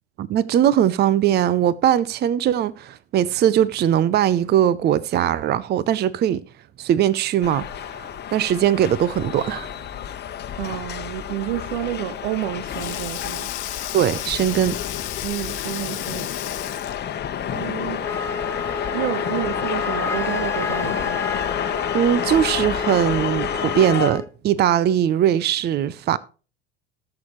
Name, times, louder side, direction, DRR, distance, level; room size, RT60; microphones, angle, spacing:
voice 1, 0.2-6.4 6.8-7.7 8.3-9.7 13.9-14.8 21.9-26.2, right 10 dB, 30° right, 0.6 m, -20 dB
sound 1, 7.4-24.1, left 9 dB, 30° left, 1.1 m, -29 dB
voice 2, 10.6-13.5 15.2-16.3 17.5-18.0 18.9-21.3, right 14 dB, 65° right, 0.8 m, -30 dB
Sink (filling or washing), 12.0-17.2, left 15 dB, 75° left, 0.7 m, -34 dB
Wind instrument woodwind instrument, 18.0-24.3, left 3 dB, 10° left, 0.6 m, -31 dB
19.5 x 6.8 x 3.1 m
hypercardioid pair, 80°, 34 cm